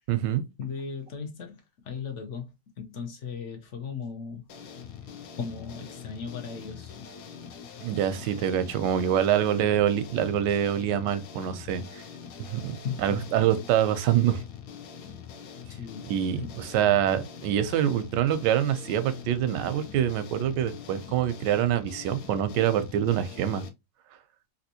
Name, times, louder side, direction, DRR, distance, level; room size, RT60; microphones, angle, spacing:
voice 1, 0.1-0.4 7.8-12.0 12.4-14.4 16.1-23.6, right 10 dB, 90° right, 1.2 m, -25 dB
voice 2, 0.6-4.4 5.4-7.0 12.8-13.2 15.7-16.6, left 6 dB, 55° left, 0.8 m, -37 dB
sound 1, 4.5-23.7, left 7 dB, 75° left, 1.1 m, -44 dB
3.4 x 2.7 x 2.7 m
omnidirectional pair, 1.8 m